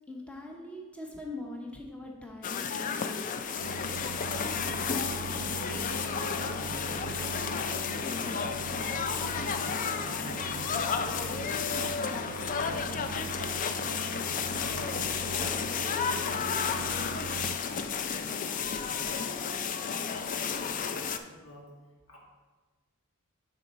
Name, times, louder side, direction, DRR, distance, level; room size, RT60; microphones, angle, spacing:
voice 1, 0.1-3.3, left 2 dB, 5° left, 0 dB, 0.7 m, -42 dB
sound 1, 2.4-21.2, left 6 dB, 35° left, 0.3 m, -32 dB
sound 2, 3.6-17.6, right 6 dB, 80° right, 0.3 m, -42 dB
voice 2, 4.1-7.7 8.1-11.9 12.4-17.2 17.6-21.7 22.1-22.2, left 1 dB, 65° left, -3 dB, 1.8 m, -47 dB
7.0 x 4.1 x 5.5 m, 1.3 s
head